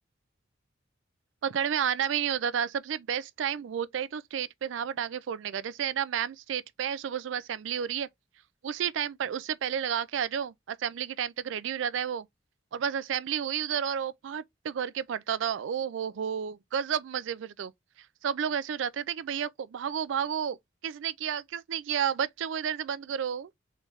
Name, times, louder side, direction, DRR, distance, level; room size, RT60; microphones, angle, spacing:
voice 1, 1.4-8.1 8.6-12.3 12.7-17.7 18.2-20.6 20.8-23.5, right 8 dB, 75° right, 0.4 m, -31 dB
3.9 x 3.1 x 3.4 m
head